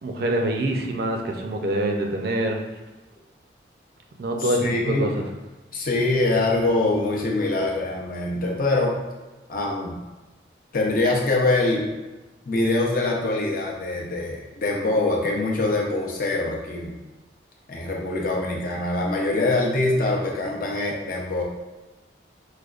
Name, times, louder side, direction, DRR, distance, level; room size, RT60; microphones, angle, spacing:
voice 1, 0.0-2.6 4.2-5.1, right 1 dB, 55° right, 2 dB, 0.4 m, -25 dB
voice 2, 4.4-5.2 5.7-9.0 9.5-10.0 10.7-11.9 12.4-16.9 17.7-21.4, left 2 dB, 50° left, -1 dB, 0.6 m, -24 dB
4.9 x 2.1 x 2.4 m, 1.1 s
head